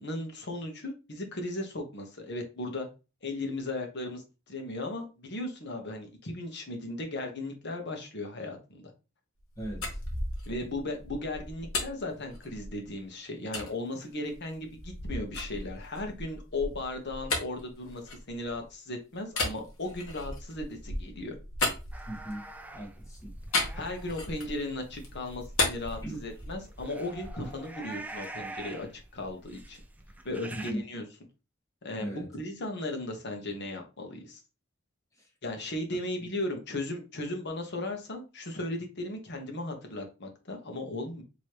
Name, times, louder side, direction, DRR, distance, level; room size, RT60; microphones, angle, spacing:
voice 1, 0.0-2.9 3.2-8.9 10.5-21.3 23.7-29.8 30.2-31.0 31.8-34.4 35.4-41.2, left 2 dB, 55° left, 1.1 m, -36 dB
sound 1, 9.4-12.9 13.5-13.7 14.3-18.7 19.3-22.5 23.5-24.6 25.0-26.7, left 2 dB, 75° left, 1.3 m, -35 dB
voice 2, 9.6-10.0 22.1-22.5 22.7-23.3 26.0-26.2 30.5-30.8 32.0-32.3 35.2-35.3, right 1 dB, 15° left, 1.3 m, -38 dB
sound 2, 21.9-30.7, right 1 dB, 5° right, 0.4 m, -44 dB
4.8 x 3.0 x 3.0 m
head